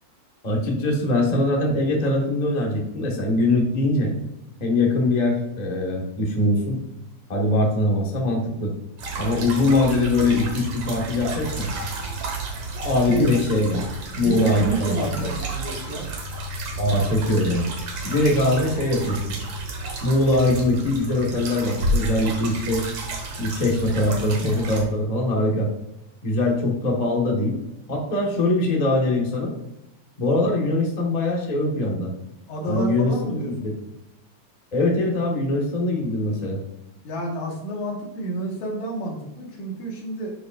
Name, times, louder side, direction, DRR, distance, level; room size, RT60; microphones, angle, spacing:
voice 1, 0.4-4.1 4.6-6.8 7.3-8.7 9.2-11.7 12.8-13.8 14.1-15.3 16.7-17.7 18.0-19.4 20.0-22.8 23.4-25.7 26.2-27.6 27.9-29.5 30.2-32.1 32.6-33.7 34.7-36.6, left 2 dB, 40° left, 0 dB, 0.6 m, -22 dB
sound 1, 9.0-24.8, right 2 dB, 60° right, 2.4 m, -31 dB
voice 2, 13.0-13.4 14.1-16.2 32.5-33.7 37.0-40.3, right 1 dB, 80° left, -1 dB, 3.0 m, -29 dB
11.0 x 5.0 x 2.5 m, 0.87 s
omnidirectional pair, 3.3 m